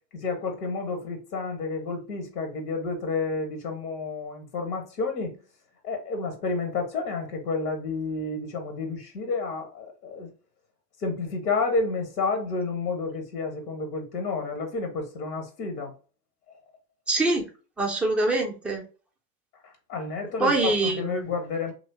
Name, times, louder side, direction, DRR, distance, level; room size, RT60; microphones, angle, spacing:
voice 1, 0.1-5.4 5.8-10.3 11.0-15.9 16.5-16.6 19.6-21.7, left 3 dB, 70° left, 1.0 m, -30 dB
voice 2, 17.1-17.5 17.8-18.8 20.4-21.3, right 2 dB, 5° right, 0.4 m, -24 dB
3.0 x 2.7 x 2.8 m
figure-of-eight pair, 80°, 50 cm